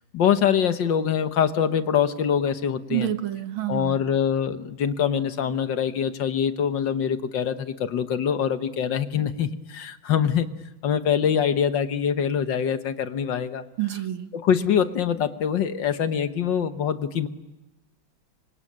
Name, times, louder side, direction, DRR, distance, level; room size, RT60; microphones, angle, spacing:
voice 1, 0.1-3.1 3.7-10.5 10.8-13.6 14.3-17.3, left 8 dB, 65° left, 10 dB, 1.8 m, -24 dB
voice 2, 2.9-4.0 13.8-14.3, right 13 dB, 75° right, 8 dB, 2.2 m, -28 dB
26.0 x 25.0 x 8.6 m, 1.0 s
omnidirectional pair, 2.2 m